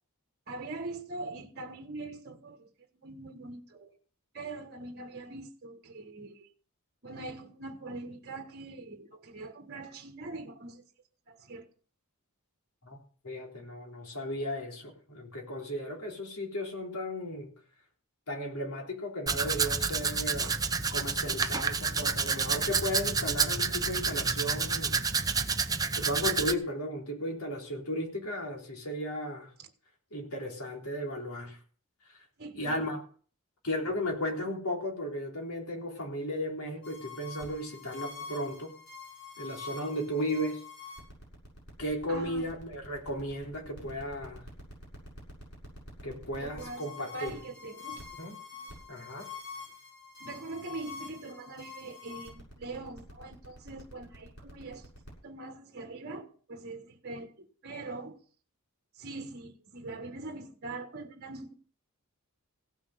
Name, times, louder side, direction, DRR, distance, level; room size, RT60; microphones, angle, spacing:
voice 1, 0.5-2.7 3.0-4.0 4.3-6.5 7.0-10.8 11.3-11.7 29.6-29.7 32.4-32.9 42.1-42.5 46.4-48.2 48.5-49.0 50.2-54.9 55.2-58.2 58.9-61.5, right 2 dB, 45° right, 1.5 m, -42 dB
voice 2, 13.2-17.5 18.3-20.6 20.9-25.0 25.9-29.5 30.1-31.6 32.6-33.0 33.6-38.7 39.4-40.6 41.8-44.4 46.0-47.3 48.2-48.3 48.9-49.3, equal, 70° left, 3.7 m, -35 dB
Domestic sounds home sounds, 19.3-26.5, right 5 dB, 15° right, 0.8 m, -29 dB
sound 1, 36.8-55.1, left 4 dB, 55° left, 7.3 m, -46 dB
16.5 x 6.2 x 7.8 m
head